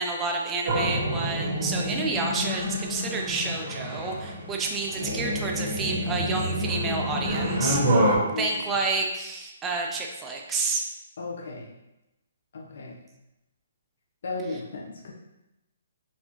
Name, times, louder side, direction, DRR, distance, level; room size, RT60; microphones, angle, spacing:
voice 1, 0.0-10.8, right 3 dB, 10° right, 0 dB, 0.3 m, -30 dB
sound 1, 0.6-8.2, equal, 35° right, 1.0 m, -27 dB
voice 2, 8.2-8.5 11.2-11.7 12.5-13.0 14.2-15.1, left 3 dB, 55° left, -1 dB, 0.7 m, -35 dB
4.2 x 2.6 x 2.9 m, 0.95 s
hypercardioid pair, 170°, 0 cm